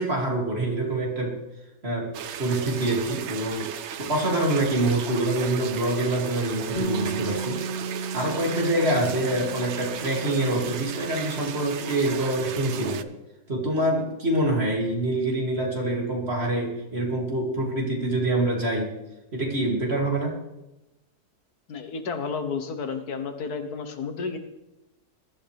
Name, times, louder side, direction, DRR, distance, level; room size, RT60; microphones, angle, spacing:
voice 1, 0.0-1.4 1.8-2.1 2.4-3.7 4.0-7.6 7.9-13.0 13.5-18.9 19.3-20.3, right 1 dB, 40° right, -2 dB, 3.1 m, -25 dB
sound 1, 2.1-13.0, right 9 dB, 60° right, 0.8 m, -36 dB
Bass guitar, 6.8-11.5 11.7-13.0, right 3 dB, 35° left, 0.9 m, -35 dB
voice 2, 21.7-24.4, left 5 dB, 75° left, 7 dB, 1.7 m, -31 dB
21.5 x 12.5 x 3.5 m, 0.95 s
omnidirectional pair, 1.7 m